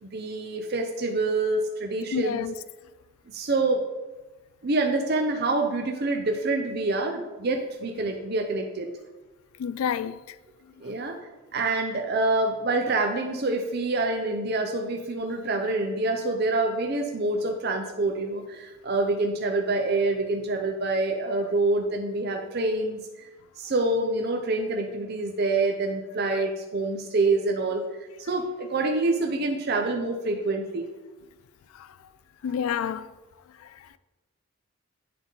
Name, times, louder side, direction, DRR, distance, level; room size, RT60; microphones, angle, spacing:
voice 1, 0.0-2.5 3.3-3.8 4.6-8.9 10.8-11.1 11.5-23.3 23.6-27.8 28.2-30.9, right 2 dB, 50° right, 0.5 m, -26 dB
voice 2, 2.1-2.5 9.6-10.2 31.7-31.9 32.4-33.1 33.6-33.8, left 8 dB, 85° left, 0.3 m, -29 dB
9.3 x 3.8 x 3.9 m
head